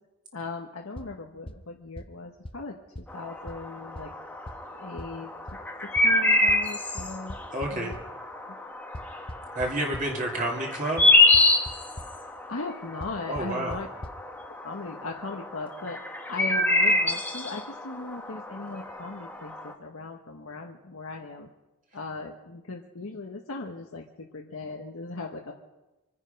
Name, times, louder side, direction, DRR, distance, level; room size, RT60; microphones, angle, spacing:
voice 1, 0.3-4.1 4.7-5.3 6.0-7.3 7.7-7.9 8.5-8.6 12.5-13.9 14.6-16.0 16.3-21.5 21.9-25.5, left 3 dB, 70° left, 1 dB, 1.1 m, -38 dB
sound 1, 1.0-1.1 1.5-1.6 2.0-2.1 2.4-2.5 3.0-3.1 3.5-3.6 4.0-4.1 4.5-4.6 5.0-5.1 5.5-5.6 6.0-6.1 6.5-6.6 7.0-8.0 8.9-10.0 11.0-11.1 11.3-11.7 12.0-12.1 13.0-13.1 13.4-13.5 13.7-13.8 14.0-14.1, left 1 dB, 25° left, 0.7 m, -37 dB
sound 2, 3.1-19.7, left 2 dB, 5° left, 1.2 m, -27 dB
voice 2, 7.5-7.9 9.5-11.1 13.3-13.8, right 1 dB, 35° right, -1 dB, 2.3 m, -29 dB
25.0 x 9.8 x 5.2 m, 1.1 s
head